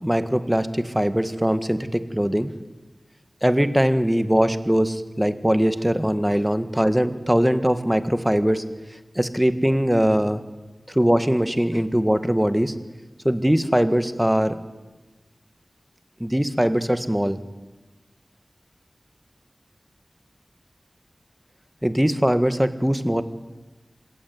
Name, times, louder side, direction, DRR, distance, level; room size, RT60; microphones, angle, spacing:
voice 1, 0.0-2.5 3.4-8.6 9.1-10.4 10.9-12.7 13.2-14.5 16.2-17.4 21.8-23.2, equal, 5° right, 11 dB, 1.6 m, -21 dB
26.0 x 16.5 x 9.8 m, 1.2 s
wide cardioid pair, 70°, 0 cm